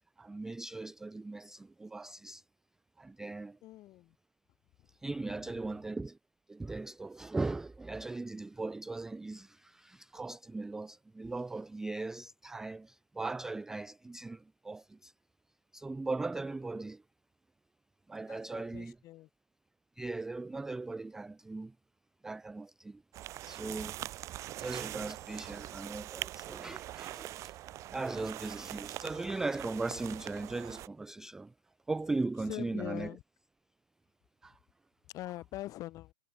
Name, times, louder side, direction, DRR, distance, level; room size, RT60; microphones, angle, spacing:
voice 1, 0.2-2.4 3.0-3.6 4.9-6.2 6.5-15.1 15.7-17.0 18.1-19.0 20.0-21.7 22.2-23.0 23.4-24.0 24.5-27.6 27.9-31.5 31.9-33.1 34.4-34.6, right 3 dB, 5° right, 0.3 m, -38 dB
voice 2, 3.6-4.1 4.8-4.9 18.3-19.3 32.5-33.2 35.1-36.1, left 16 dB, 30° left, 2.6 m, -43 dB
sound 1, 23.1-30.9, right 14 dB, 25° right, 0.9 m, -43 dB
hypercardioid pair, 135°, 12 cm